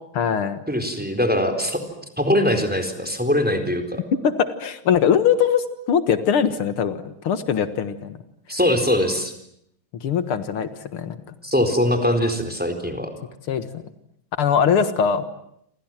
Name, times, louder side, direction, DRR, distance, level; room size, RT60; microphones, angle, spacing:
voice 1, 0.2-0.6 4.2-7.9 10.0-11.2 13.5-13.8 14.4-15.2, left 7 dB, 80° left, 11 dB, 2.4 m, -21 dB
voice 2, 0.7-1.8 2.2-4.0 8.5-9.3 11.4-13.1, left 1 dB, 5° right, 7 dB, 4.2 m, -22 dB
29.0 x 27.0 x 7.6 m, 0.72 s
omnidirectional pair, 2.4 m